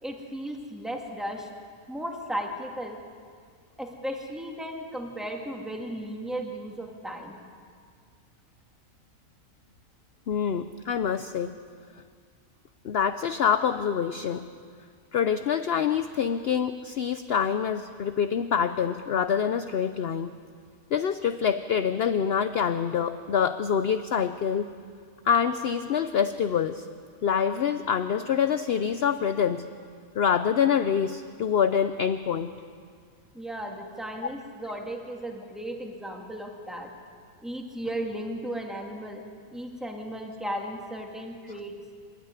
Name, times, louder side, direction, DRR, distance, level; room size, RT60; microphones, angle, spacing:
voice 1, 0.0-1.5 1.9-3.0 3.8-7.4 33.3-36.9 37.4-39.2 39.5-41.7, right 1 dB, ahead, 1 dB, 2.2 m, -35 dB
voice 2, 10.3-11.6 12.8-14.5 15.1-20.4 20.9-24.7 25.2-26.9 27.2-29.7 30.1-32.6 34.7-34.8, left 7 dB, 55° left, 10 dB, 0.8 m, -26 dB
26.5 x 12.5 x 9.6 m, 2.1 s
omnidirectional pair, 1.5 m